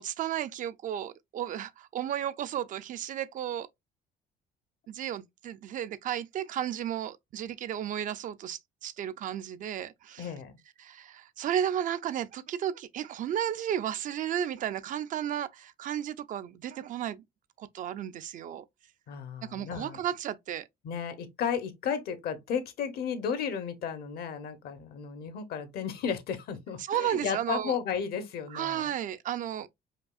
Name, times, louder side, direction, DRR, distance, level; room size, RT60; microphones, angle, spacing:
voice 1, 0.0-3.7 4.9-10.3 10.8-17.2 17.6-18.6 19.4-20.7 26.9-27.8 28.5-29.7, right 10 dB, 50° right, 0.4 m, -33 dB
voice 2, 10.2-10.6 19.1-20.0 20.8-28.9, left 7 dB, 65° left, 0.8 m, -34 dB
5.1 x 2.4 x 2.3 m
cardioid pair, 110°, 17 cm